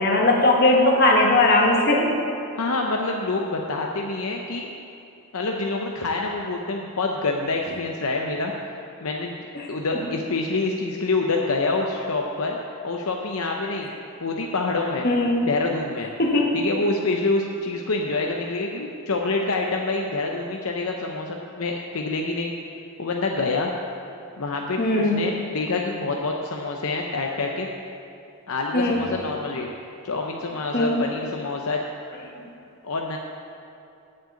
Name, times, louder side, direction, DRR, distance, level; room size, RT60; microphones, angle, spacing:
voice 1, 0.0-2.1 9.5-9.7 15.0-15.5 16.2-16.6 24.8-25.2 28.7-29.1 30.7-31.0, left 2 dB, 45° left, -1 dB, 1.5 m, -19 dB
voice 2, 2.6-4.7 5.3-8.5 9.0-9.4 9.7-12.6 12.8-13.9 14.2-15.1 15.4-16.1 16.5-22.5 23.0-23.7 24.4-27.7 28.5-29.7 30.0-31.8 32.8-33.2, left 3 dB, 75° left, 1 dB, 0.7 m, -26 dB
7.8 x 7.7 x 8.3 m, 2.6 s
head